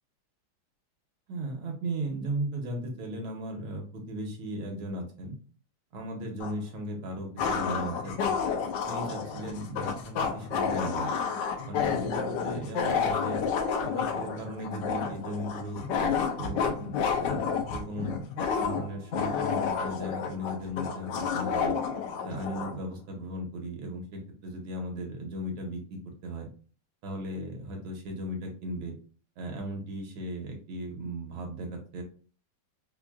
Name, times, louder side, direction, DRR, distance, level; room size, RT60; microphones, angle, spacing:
voice 1, 1.3-5.4 5.9-8.4 8.9-11.1 11.6-13.4 13.8-15.8 16.4-18.2 18.6-21.8 22.2-26.5 27.0-28.9 29.4-32.0, right 1 dB, 75° right, 1 dB, 1.5 m, -36 dB
sound 1, 6.4-6.5 7.4-22.8, left 6 dB, 75° left, 1.0 m, -30 dB
4.5 x 2.6 x 2.3 m, 0.40 s
omnidirectional pair, 2.4 m